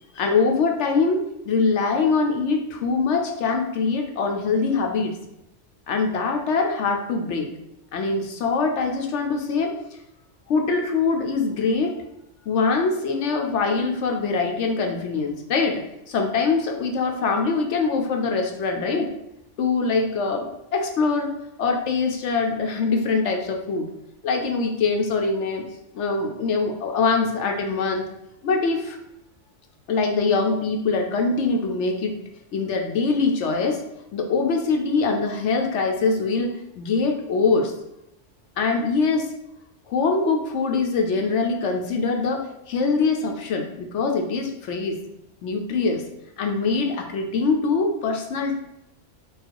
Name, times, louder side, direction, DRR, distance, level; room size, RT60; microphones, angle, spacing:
voice 1, 0.1-5.2 5.9-7.5 7.9-9.8 10.5-11.9 12.5-15.8 16.1-19.1 19.6-21.3 21.6-23.9 24.2-25.6 25.9-28.1 28.4-29.0 29.9-32.2 32.5-33.8 34.1-37.7 38.6-39.3 39.9-45.0 45.4-46.0 46.4-48.6, left 4 dB, 70° left, 3 dB, 0.9 m, -23 dB
4.6 x 2.3 x 4.6 m, 0.85 s
omnidirectional pair, 1.3 m